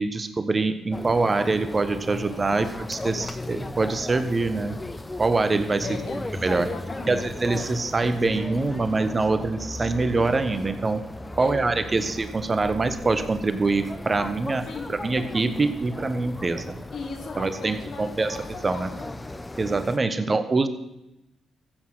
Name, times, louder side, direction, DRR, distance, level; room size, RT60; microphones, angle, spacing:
voice 1, 0.0-4.8 5.2-6.0 6.4-6.7 7.1-11.1 11.4-16.8 17.4-18.4 18.6-18.9 19.6-20.7, right 3 dB, 35° right, 11 dB, 1.2 m, -24 dB
sound 1, 0.9-20.0, left 2 dB, 20° left, 1.0 m, -36 dB
voice 2, 2.2-2.7 5.8-7.2 11.3-12.1 14.7-14.9 16.9-19.1 20.2-20.4, left 4 dB, 60° left, 3 dB, 2.8 m, -38 dB
14.5 x 8.5 x 6.1 m, 0.91 s
hypercardioid pair, 45°, 0 cm